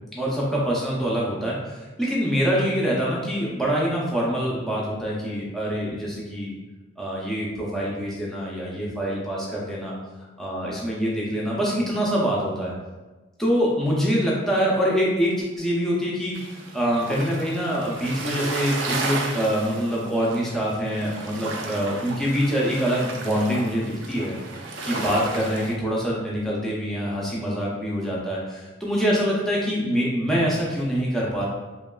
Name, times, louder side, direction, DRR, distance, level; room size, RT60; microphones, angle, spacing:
voice 1, 0.1-6.5 7.0-9.9 10.4-12.7 13.4-16.4 16.7-24.3 24.8-31.5, equal, ahead, -6 dB, 0.4 m, -25 dB
sound 1, 16.3-25.7, right 3 dB, 75° right, 0.4 m, -33 dB
2.8 x 2.2 x 2.2 m, 1.2 s
head